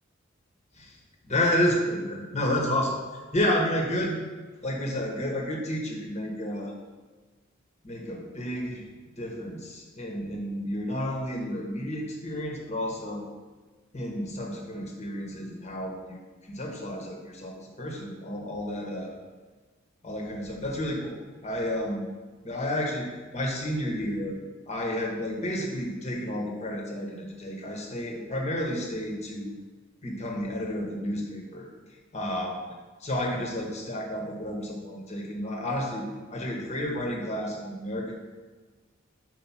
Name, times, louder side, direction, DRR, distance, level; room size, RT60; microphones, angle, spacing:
voice 1, 1.2-3.0 3.3-4.1 4.6-6.7 7.8-8.8 9.2-13.2 13.9-16.2 16.4-19.1 20.0-22.1 22.4-23.1 23.3-24.4 24.7-29.6 30.0-31.7 32.1-32.6 33.0-36.0 36.3-38.1, left 1 dB, 35° left, 0 dB, 1.2 m, -31 dB
4.8 x 4.7 x 5.7 m, 1.4 s
head